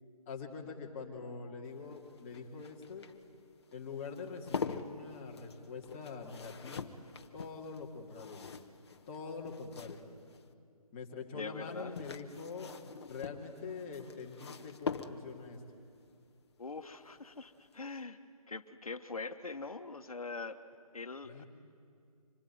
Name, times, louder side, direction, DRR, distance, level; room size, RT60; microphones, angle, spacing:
voice 1, 0.3-3.1 3.7-6.8 7.3-8.5 9.1-10.0 10.9-15.6 21.2-21.4, left 5 dB, 20° left, -1 dB, 2.5 m, -44 dB
sound 1, 1.7-10.5 11.6-15.5 17.2-17.5 17.7-17.8, left 5 dB, 45° left, 1.3 m, -44 dB
voice 2, 11.3-12.0 16.6-18.2 18.5-20.6 20.9-21.4, left 3 dB, 65° left, 9 dB, 1.6 m, -43 dB
26.0 x 21.5 x 9.4 m, 2.4 s
figure-of-eight pair, 155°, 19 cm